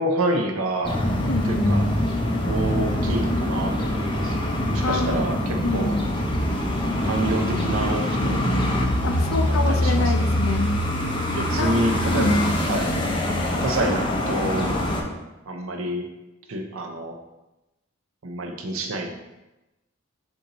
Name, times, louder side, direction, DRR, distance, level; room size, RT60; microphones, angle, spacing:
voice 1, 0.0-1.0 1.4-1.8 2.4-4.4 4.7-6.0 7.0-8.5 9.7-10.0 11.2-12.4 12.7-12.9 13.6-15.2 15.5-16.0 16.5-17.2 18.2-19.1, right 1 dB, 80° right, 3 dB, 0.7 m, -27 dB
sound 1, 0.8-15.0, left 1 dB, 25° left, 0.5 m, -24 dB
voice 2, 1.2-1.9 4.8-5.3 5.6-6.0 9.0-10.8 11.5-11.7 12.1-12.6, left 2 dB, 70° left, 5 dB, 0.5 m, -26 dB
6.9 x 2.6 x 3.0 m, 0.99 s
head